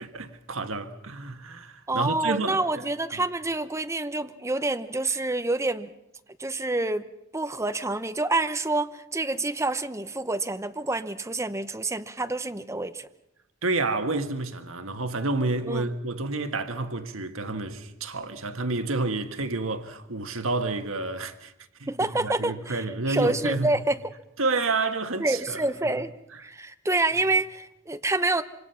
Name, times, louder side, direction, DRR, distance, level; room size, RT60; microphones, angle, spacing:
voice 1, 0.0-2.6 3.1-3.2 13.6-21.5 21.8-23.8 24.4-26.0, right 3 dB, 85° right, 1.6 m, -29 dB
voice 2, 1.9-5.9 6.4-7.0 7.3-13.1 15.7-15.9 21.9-24.0 25.2-26.1 26.4-28.4, right 2 dB, 15° right, 0.9 m, -27 dB
26.0 x 25.0 x 5.8 m
head